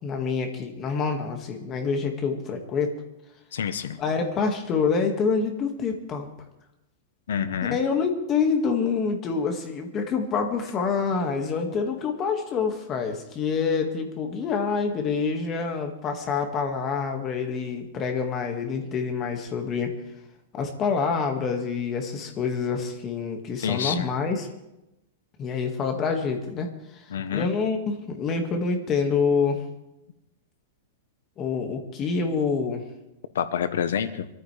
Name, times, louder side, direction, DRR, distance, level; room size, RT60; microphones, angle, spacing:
voice 1, 0.0-3.0 4.0-6.3 7.7-19.9 20.5-24.5 25.4-29.6 31.4-32.8, left 5 dB, 20° left, 3 dB, 1.9 m, -27 dB
voice 2, 3.5-4.0 7.3-7.8 23.6-24.1 27.1-27.5 33.3-34.3, left 8 dB, 90° left, 11 dB, 1.0 m, -27 dB
23.5 x 14.0 x 3.4 m, 0.90 s
supercardioid pair, 165°, 0 cm